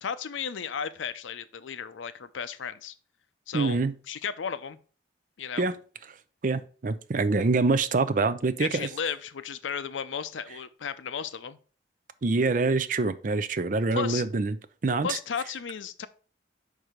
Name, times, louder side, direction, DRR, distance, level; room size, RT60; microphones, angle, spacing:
voice 1, 0.0-2.9 3.5-4.8 5.4-5.7 8.6-11.6 13.9-14.2 15.0-16.1, left 7 dB, 90° left, 0.5 m, -34 dB
voice 2, 3.5-3.9 5.6-5.8 6.4-8.9 12.2-14.6 14.8-15.2, right 3 dB, 45° right, 0.5 m, -25 dB
5.4 x 4.7 x 5.0 m
head